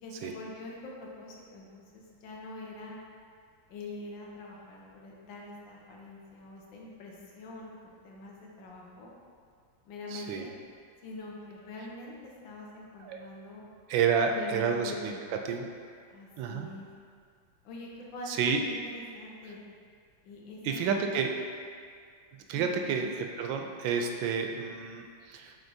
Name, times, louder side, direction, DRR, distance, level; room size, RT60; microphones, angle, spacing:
voice 1, 0.0-3.0 3.7-9.1 9.9-10.5 11.0-13.7 14.3-15.2 16.1-16.9 17.6-19.6 20.2-21.2 22.5-23.1, left 2 dB, 70° left, -3 dB, 1.6 m, -44 dB
voice 2, 10.1-10.4 13.0-13.2 13.9-15.1 15.5-15.6 16.4-16.7 18.3-18.6 20.6-21.3 22.5-25.6, right 6 dB, 75° right, 3 dB, 1.2 m, -30 dB
7.9 x 4.4 x 2.7 m, 2.2 s
omnidirectional pair, 2.2 m